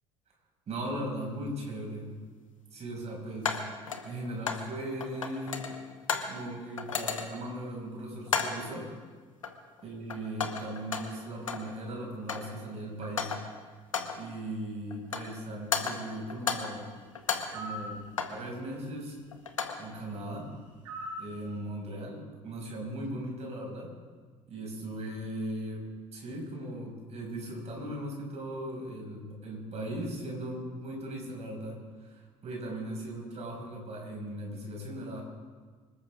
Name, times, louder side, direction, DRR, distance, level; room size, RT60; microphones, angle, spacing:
voice 1, 0.7-2.1 2.7-3.6 4.0-5.6 6.3-8.9 9.8-13.3 14.2-16.8 17.5-18.0 18.3-19.2 19.8-20.4 21.2-23.9 24.5-25.8 26.1-35.2, right 1 dB, 40° right, -1 dB, 6.1 m, -38 dB
sound 1, 1.2-1.3 3.4-4.7 5.0-6.4 6.8-7.5 8.3-8.7 9.4-9.8 10.1-11.7 12.0-12.6 13.0-13.6 13.9-14.3 14.9-15.4 15.7-16.8 17.1-18.5 19.3-19.9, left 6 dB, 85° left, 1.0 m, -34 dB
sound 2, 17.5-17.9 20.9-21.3, equal, 75° right, 3.3 m, -38 dB
25.5 x 13.5 x 3.7 m, 1.5 s
figure-of-eight pair, 55°, 16 cm